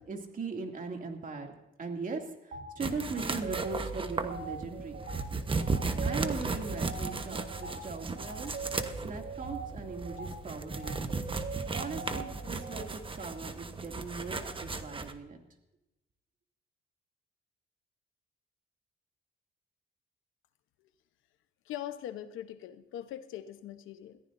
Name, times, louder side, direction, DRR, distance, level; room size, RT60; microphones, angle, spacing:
voice 1, 0.1-1.5 1.8-5.0 6.0-8.5 9.0-11.2 11.7-15.4, right 4 dB, 45° right, 3 dB, 2.6 m, -39 dB
sound 1, 2.5-2.7 3.1-12.9, right 4 dB, 65° right, 1.9 m, -41 dB
sound 2, 2.8-15.1, right 3 dB, 25° right, 1.2 m, -36 dB
voice 2, 21.6-24.2, left 11 dB, 90° left, 10 dB, 1.0 m, -41 dB
21.5 x 14.5 x 2.7 m, 0.95 s
cardioid pair, 90°, 20 cm